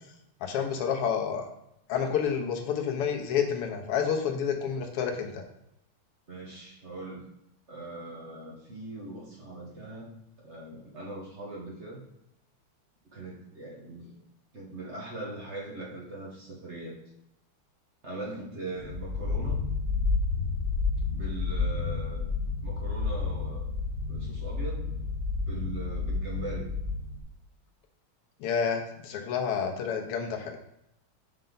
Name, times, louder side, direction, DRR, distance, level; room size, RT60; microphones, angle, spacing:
voice 1, 0.4-1.5 1.9-5.4 28.4-30.8, left 7 dB, 85° left, 3 dB, 1.8 m, -29 dB
voice 2, 6.3-7.3 7.7-10.1 10.4-12.0 13.1-14.1 14.5-16.9 18.0-19.6 21.1-22.3 22.6-23.7 24.1-24.9 25.5-26.7, right 2 dB, 40° right, -4 dB, 1.2 m, -40 dB
sound 1, 18.8-27.2, left 4 dB, 40° left, 0.5 m, -30 dB
5.5 x 5.4 x 3.8 m, 0.81 s
omnidirectional pair, 2.4 m